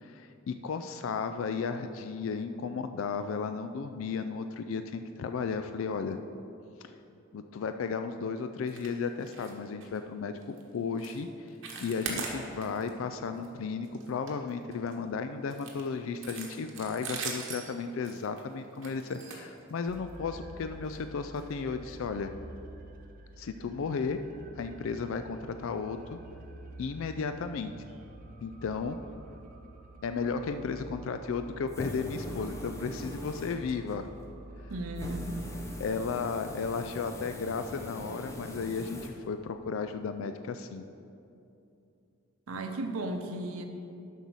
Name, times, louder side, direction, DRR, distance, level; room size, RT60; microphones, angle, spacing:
voice 1, 0.0-6.2 6.8-6.9 7.3-11.3 11.8-22.3 23.4-24.2 24.6-26.2 26.8-27.7 28.4-29.0 30.0-34.1 35.8-40.9, left 5 dB, 70° left, 9 dB, 0.3 m, -34 dB
sound 1, 8.7-8.9 9.2-9.5 9.8-10.0 10.4-10.6 11.0-11.2 11.5-12.9 13.2-13.5 13.8-14.9 15.5-20.1 20.8-21.0 21.4-21.5 21.9-22.0, right 4 dB, 65° right, 1.3 m, -41 dB
sound 2, 19.9-35.9, right 1 dB, 40° right, 0.7 m, -48 dB
sound 3, 31.7-34.0 35.0-39.1, left 1 dB, 15° left, 0.7 m, -42 dB
voice 2, 34.7-35.5 42.5-43.6, right 1 dB, 90° right, 5 dB, 0.7 m, -35 dB
7.9 x 5.5 x 6.2 m, 2.7 s
head